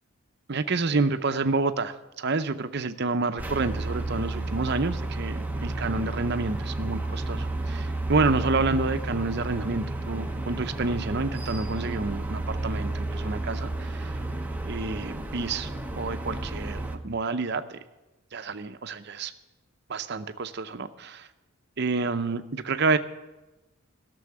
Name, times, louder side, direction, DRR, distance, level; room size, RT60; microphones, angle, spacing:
voice 1, 0.5-14.1 14.6-17.8 18.3-19.3 19.9-21.3 21.8-23.0, right 3 dB, 50° right, 10 dB, 0.6 m, -29 dB
sound 1, 3.4-17.0, right 2 dB, 5° right, 0.6 m, -32 dB
13.0 x 6.9 x 9.6 m, 1.1 s
head